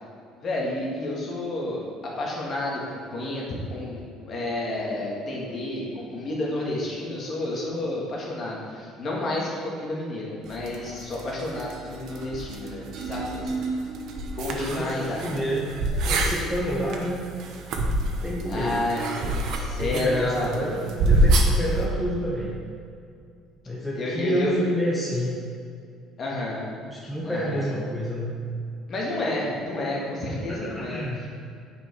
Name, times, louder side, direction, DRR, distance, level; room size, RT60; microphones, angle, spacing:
voice 1, 0.4-1.8 2.2-13.5 14.3-15.4 18.5-19.1 19.8-20.5 23.9-24.5 26.2-26.7 27.2-27.7 28.9-31.0, left 2 dB, 35° left, -3 dB, 1.9 m, -30 dB
sound 1, 10.5-21.8, right 1 dB, 55° right, 1.0 m, -27 dB
voice 2, 14.5-15.7 16.0-17.3 18.2-18.8 19.2-22.6 23.7-25.3 26.9-28.4 30.5-31.2, equal, ahead, -5 dB, 0.9 m, -29 dB
9.4 x 5.7 x 4.7 m, 2.4 s
cardioid pair, 165°, 0 cm